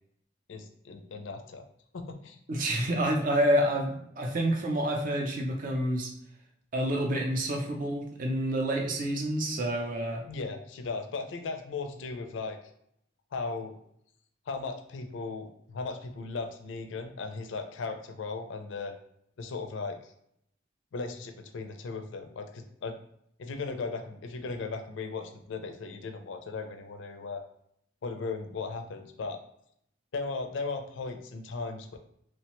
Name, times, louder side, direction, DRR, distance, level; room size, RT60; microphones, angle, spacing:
voice 1, 0.5-1.7 1.9-2.4 10.3-12.6 13.3-13.8 14.5-18.9 19.4-20.1 20.9-23.0 23.4-27.4 28.0-29.4 30.1-32.0, left 4 dB, 70° left, 6 dB, 0.4 m, -37 dB
voice 2, 2.5-6.1 6.7-10.2, right 1 dB, 45° right, 1 dB, 0.5 m, -28 dB
3.0 x 2.1 x 2.9 m, 0.72 s
head